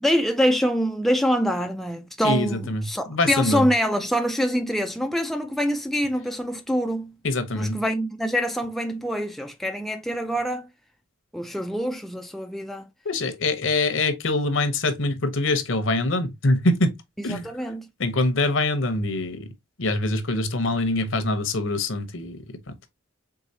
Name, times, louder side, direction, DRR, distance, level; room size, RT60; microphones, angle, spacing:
voice 1, 0.0-7.1 7.5-10.7 11.3-12.9 17.2-17.9, equal, ahead, 0.3 m, -25 dB
voice 2, 2.2-3.7 7.2-7.8 13.0-16.9 17.2-17.5 18.0-19.5 19.8-22.7, left 2 dB, 65° left, 0.9 m, -24 dB
4.7 x 3.7 x 2.7 m
head